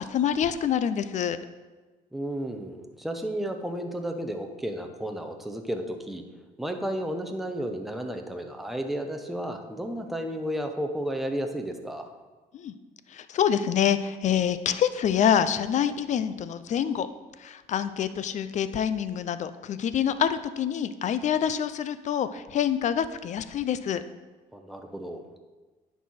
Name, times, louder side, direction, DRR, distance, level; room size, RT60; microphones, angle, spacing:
voice 1, 0.0-1.4 12.5-12.7 13.1-17.1 17.4-24.0, left 9 dB, 45° left, 13 dB, 0.5 m, -26 dB
voice 2, 2.1-6.2 6.6-12.1 24.5-25.2, right 1 dB, ahead, 4 dB, 0.8 m, -32 dB
10.0 x 4.7 x 4.3 m, 1.3 s
cardioid pair, 110°, 17 cm